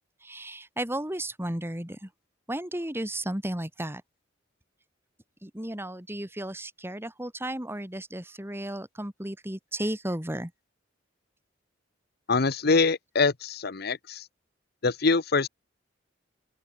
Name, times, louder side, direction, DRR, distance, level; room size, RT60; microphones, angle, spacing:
voice 1, 0.2-2.1 2.5-4.0 5.4-10.5, right 1 dB, 10° right, 2.6 m, -34 dB
voice 2, 12.3-14.2 14.8-15.5, left 4 dB, 55° left, 0.9 m, -24 dB
open air
head